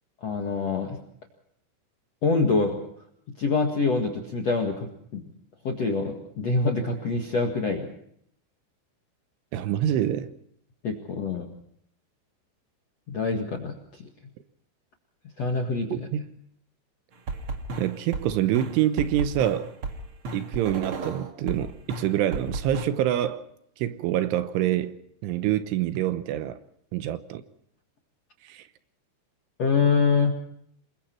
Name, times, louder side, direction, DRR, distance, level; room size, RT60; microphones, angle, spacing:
voice 1, 0.2-1.0 2.2-2.7 3.4-5.2 5.6-7.9 10.8-11.5 13.1-13.7 15.4-16.0 29.6-30.3, left 4 dB, 55° left, 1.8 m, -25 dB
voice 2, 9.5-10.3 15.9-16.3 17.8-19.7 20.3-23.5 23.8-26.6 26.9-27.4 28.4-28.7, right 12 dB, 75° right, 3.3 m, -26 dB
sound 1, 17.3-21.6 21.9-22.8, right 3 dB, 55° right, 1.5 m, -33 dB
27.5 x 22.5 x 4.5 m
omnidirectional pair, 5.8 m